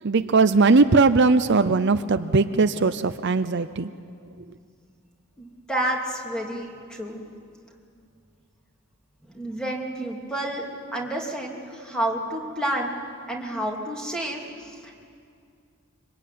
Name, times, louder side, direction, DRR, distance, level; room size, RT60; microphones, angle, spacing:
voice 1, 0.0-3.9, right 3 dB, 50° right, 11 dB, 0.6 m, -19 dB
voice 2, 5.4-7.2 9.3-10.7 10.9-13.0 13.3-14.9, right 1 dB, 5° left, -1 dB, 2.9 m, -30 dB
25.5 x 24.0 x 9.4 m, 2.4 s
head